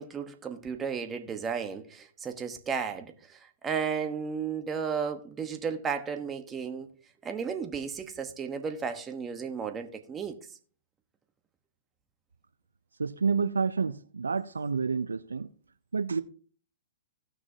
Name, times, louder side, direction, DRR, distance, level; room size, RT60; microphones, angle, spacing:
voice 1, 0.0-6.9 7.2-10.4, right 6 dB, 20° right, 1.1 m, -34 dB
voice 2, 13.0-15.5 15.9-16.2, right 5 dB, 85° right, 0.4 m, -29 dB
16.5 x 6.1 x 2.8 m
hypercardioid pair, 115°, 0 cm